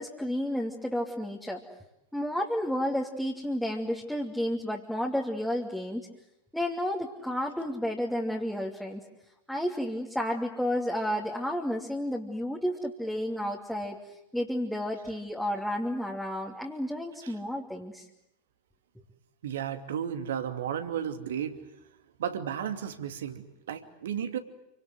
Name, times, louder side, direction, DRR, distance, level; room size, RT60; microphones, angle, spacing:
voice 1, 0.0-1.6 2.1-6.1 6.5-9.1 9.5-18.1, equal, ahead, -2 dB, 2.8 m, -31 dB
voice 2, 19.4-21.6 22.2-24.4, right 9 dB, 60° right, 8 dB, 2.7 m, -33 dB
28.5 x 26.0 x 8.0 m, 0.87 s
figure-of-eight pair, 90°, 0 cm